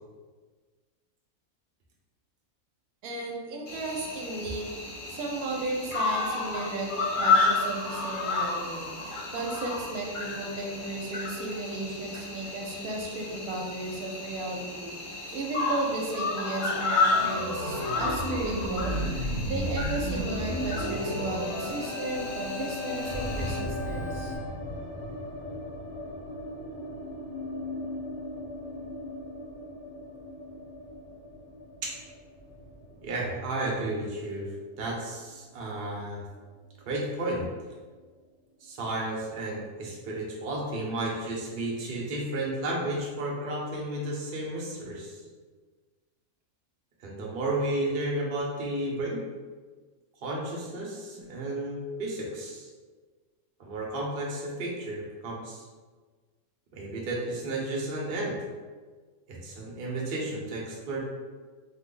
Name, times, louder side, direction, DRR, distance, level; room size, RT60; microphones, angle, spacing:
voice 1, 3.0-4.7 5.1-9.1 9.3-19.0 19.4-24.3 51.2-51.3, right 2 dB, 85° right, 0 dB, 1.1 m, -35 dB
Cricket, 3.7-23.6, left 3 dB, 85° left, 0.4 m, -31 dB
Organ, 17.0-24.4, equal, 35° left, 0.6 m, -33 dB
sound 1, 20.1-36.2 36.4-36.5 36.8-37.5, left 1 dB, 70° left, 1.5 m, -39 dB
voice 2, 33.0-34.5 34.8-36.2 36.9-37.5 38.6-45.2 47.0-49.2 50.2-52.7 53.6-55.7 56.7-58.3 59.3-61.0, right 1 dB, 50° right, -3 dB, 0.7 m, -32 dB
3.1 x 2.1 x 3.7 m, 1.4 s
omnidirectional pair, 1.5 m